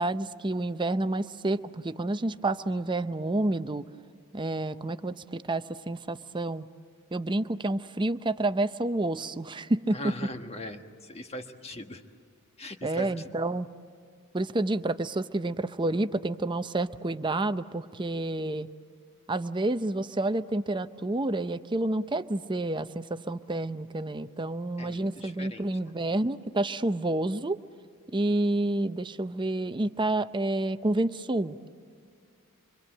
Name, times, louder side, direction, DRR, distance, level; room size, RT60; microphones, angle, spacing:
voice 1, 0.0-3.9 4.3-6.7 7.1-10.1 12.8-13.7 14.3-18.7 19.3-27.6 28.1-31.6, right 2 dB, 20° right, 12 dB, 0.6 m, -29 dB
voice 2, 9.9-12.0 12.6-13.2 24.8-25.9, left 1 dB, 30° left, 5 dB, 1.4 m, -40 dB
26.0 x 25.0 x 7.8 m, 2.3 s
head